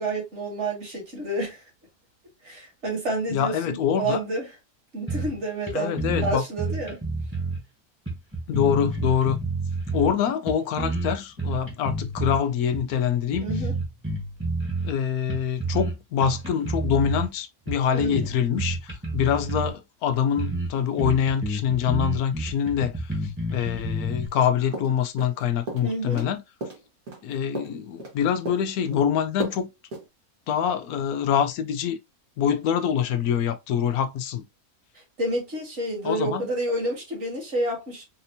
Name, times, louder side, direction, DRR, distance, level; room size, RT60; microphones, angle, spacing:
voice 1, 0.0-1.6 2.4-4.4 4.9-7.0 13.4-13.8 17.9-18.2 25.8-26.2 35.2-38.0, right 1 dB, 50° right, 2.1 m, -29 dB
voice 2, 3.3-4.2 5.7-6.4 8.5-9.4 9.9-13.5 14.8-26.4 27.2-29.7 30.5-32.0 32.4-34.5 36.0-36.5, left 8 dB, 80° left, 1.1 m, -25 dB
sound 1, 5.1-5.4 5.7-5.8 6.0-7.6 8.1-10.1 10.5-12.4 12.7-12.9 13.3-15.0 15.3-15.9 16.2-17.3 17.7-19.7 20.1-20.2 20.4-20.7 21.0-24.3, right 2 dB, 10° right, 1.3 m, -29 dB
sound 2, 24.7-25.4 25.7-26.3 26.6-28.2 28.5-29.0 29.4-29.6 29.9-30.1, right 1 dB, 70° right, 1.9 m, -34 dB
4.2 x 2.8 x 2.7 m
omnidirectional pair, 1.6 m